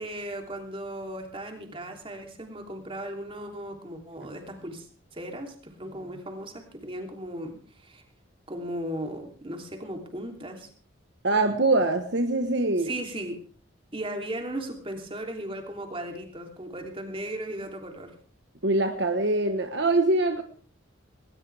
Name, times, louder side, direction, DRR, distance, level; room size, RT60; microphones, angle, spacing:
voice 1, 0.0-4.9 5.1-7.5 7.8-8.0 8.5-10.7 12.8-13.3 13.9-18.1, right 1 dB, 25° right, 3 dB, 3.2 m, -36 dB
voice 2, 11.2-12.9 18.6-20.4, right 2 dB, 60° right, 6 dB, 1.3 m, -23 dB
19.5 x 19.0 x 3.5 m, 0.41 s
head